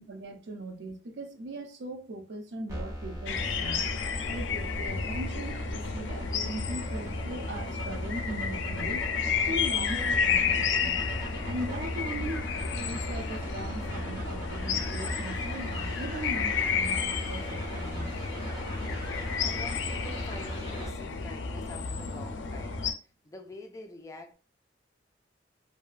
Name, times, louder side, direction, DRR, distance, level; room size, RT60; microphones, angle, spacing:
voice 1, 0.0-3.8 4.3-9.0 9.4-11.0 11.4-18.2, right 1 dB, 70° right, 0.5 m, -39 dB
sound 1, 2.7-20.9, equal, 20° right, 1.1 m, -38 dB
sound 2, 3.3-22.9, left 5 dB, 85° left, 0.4 m, -32 dB
sound 3, 9.9-17.8, right 1 dB, 35° right, 0.8 m, -54 dB
voice 2, 18.8-22.8 23.2-24.3, left 2 dB, 20° left, 0.4 m, -46 dB
2.7 x 2.3 x 2.4 m
head